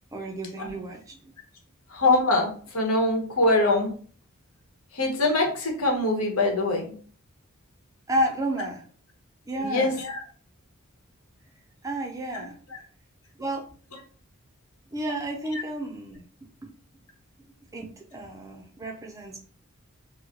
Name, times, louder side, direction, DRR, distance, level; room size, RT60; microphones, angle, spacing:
voice 1, 0.1-1.3 8.1-8.8 9.5-10.0 11.8-12.6 13.4-13.6 14.9-16.3 16.6-16.7 17.7-19.4, right 1 dB, 15° right, 1 dB, 0.4 m, -31 dB
voice 2, 1.9-3.9 4.9-6.9 9.6-10.2 12.3-12.4, left 2 dB, 85° left, 1 dB, 1.0 m, -23 dB
3.1 x 2.1 x 3.7 m, 0.44 s
head